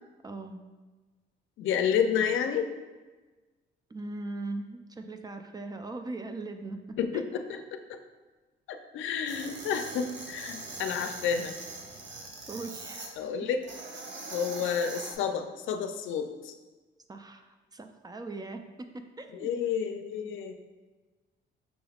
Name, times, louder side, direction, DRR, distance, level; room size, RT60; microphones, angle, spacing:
voice 1, 0.2-0.6 3.9-7.2 12.5-13.2 17.1-19.5 20.2-20.3, right 2 dB, 20° right, 6 dB, 0.3 m, -40 dB
voice 2, 1.6-2.7 7.0-8.0 8.7-11.5 13.2-13.6 14.3-16.5 19.3-20.5, left 7 dB, 75° left, 7 dB, 0.4 m, -30 dB
sound 1, 9.3-13.1 13.6-15.2, right 3 dB, 65° right, 0.8 m, -42 dB
6.0 x 3.3 x 2.3 m, 1.3 s
cardioid pair, 90°, 20 cm